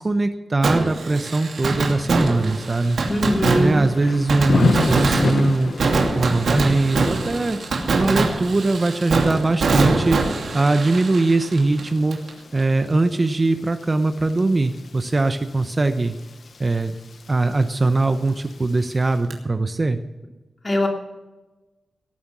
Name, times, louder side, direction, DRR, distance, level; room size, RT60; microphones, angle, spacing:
voice 1, 0.0-3.0 3.6-5.7 6.1-7.6 7.9-10.2 10.5-12.2 12.5-16.2 16.6-16.9 17.3-20.0, right 2 dB, 30° right, 8 dB, 0.8 m, -21 dB
Fireworks, 0.6-12.3 12.6-12.7 19.3-19.4, right 3 dB, 80° right, 2.7 m, -23 dB
Thunder / Rain, 2.3-19.2, left 4 dB, 60° left, 0.8 m, -32 dB
voice 2, 3.1-3.8 20.6-20.9, left 1 dB, 25° left, 1 dB, 2.9 m, -21 dB
18.0 x 9.4 x 6.1 m, 1.1 s
wide cardioid pair, 145°, 0 cm